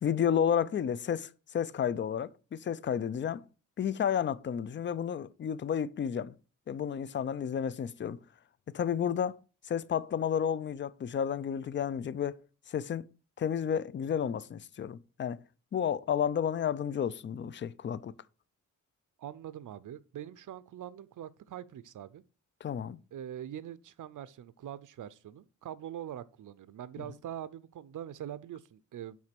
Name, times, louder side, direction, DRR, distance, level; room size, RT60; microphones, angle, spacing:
voice 1, 0.0-3.4 3.8-6.3 6.7-8.2 8.7-9.4 9.7-12.4 12.7-13.1 13.4-15.4 15.7-18.1 22.6-23.0, left 8 dB, 40° left, 0.4 m, -31 dB
voice 2, 19.2-22.2 23.1-29.2, right 10 dB, 75° right, 0.6 m, -43 dB
5.9 x 4.4 x 5.9 m
wide cardioid pair, 120°, 31 cm